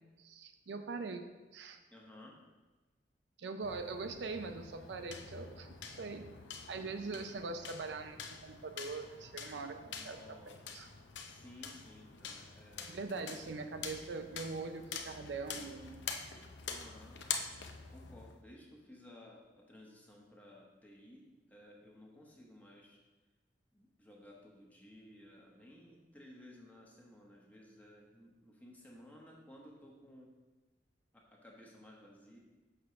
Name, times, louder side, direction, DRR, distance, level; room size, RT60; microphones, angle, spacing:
voice 1, 0.2-1.8 3.4-6.3 6.7-10.2 10.7-10.9 12.9-16.0, right 4 dB, 65° right, 7 dB, 0.4 m, -42 dB
voice 2, 1.9-2.4 9.8-10.6 11.2-13.5 16.7-17.2 17.9-23.0 23.7-30.3 31.1-32.4, left 1 dB, 10° left, -2 dB, 0.9 m, -56 dB
sound 1, 3.6-18.4, left 6 dB, 70° left, 0.6 m, -46 dB
6.6 x 3.7 x 5.7 m, 1.2 s
head